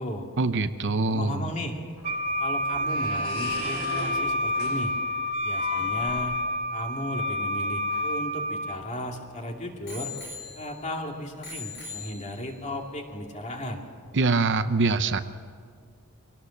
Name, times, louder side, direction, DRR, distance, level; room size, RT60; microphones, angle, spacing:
voice 1, 0.4-1.5 14.1-15.2, right 3 dB, 55° right, 10 dB, 0.8 m, -24 dB
voice 2, 1.1-1.8 2.4-4.9 5.4-6.4 6.7-10.1 10.5-13.8, left 1 dB, 35° left, 2 dB, 2.6 m, -35 dB
sound 1, 1.8-6.6, left 1 dB, 75° left, 6.8 m, -39 dB
Wind instrument woodwind instrument, 2.0-8.8, left 1 dB, 35° right, 1.5 m, -29 dB
Bicycle bell, 7.6-9.2 9.9-11.0 11.4-12.7 13.4-13.5, left 4 dB, 55° left, 5.9 m, -42 dB
24.0 x 18.0 x 7.3 m, 2.1 s
head